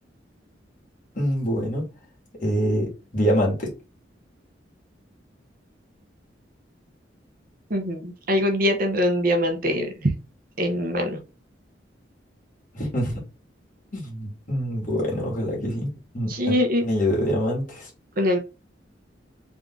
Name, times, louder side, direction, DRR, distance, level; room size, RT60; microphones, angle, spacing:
voice 1, 1.2-1.9 2.4-3.7 12.7-13.2 13.9-16.6 16.8-17.9, equal, 45° left, -3 dB, 1.9 m, -25 dB
voice 2, 7.7-10.1 10.6-11.2 16.3-16.8 18.2-18.4, equal, 50° right, 5 dB, 0.8 m, -23 dB
3.5 x 2.7 x 3.7 m, 0.29 s
head